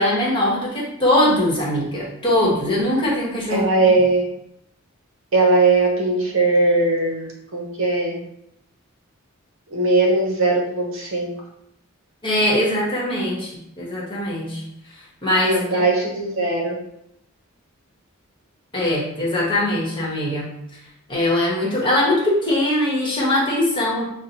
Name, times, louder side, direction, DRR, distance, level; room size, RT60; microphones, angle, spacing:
voice 1, 0.0-3.6 12.2-14.6 15.2-15.6 18.7-20.5 21.1-24.0, left 1 dB, 20° left, -5 dB, 1.0 m, -21 dB
voice 2, 3.5-4.2 5.3-8.2 9.7-11.3 15.4-16.8, right 2 dB, 65° right, 0 dB, 0.8 m, -19 dB
5.5 x 2.1 x 2.8 m, 0.80 s
head